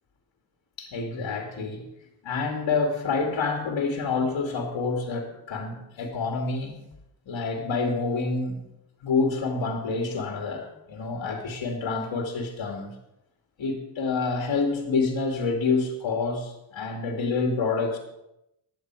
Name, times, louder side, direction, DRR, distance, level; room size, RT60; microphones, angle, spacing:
voice 1, 0.8-1.8 2.2-6.8 7.3-8.6 9.0-12.9 13.6-18.0, left 4 dB, 75° left, 1 dB, 2.5 m, -27 dB
15.5 x 10.5 x 4.8 m, 0.85 s
wide cardioid pair, 165°, 45 cm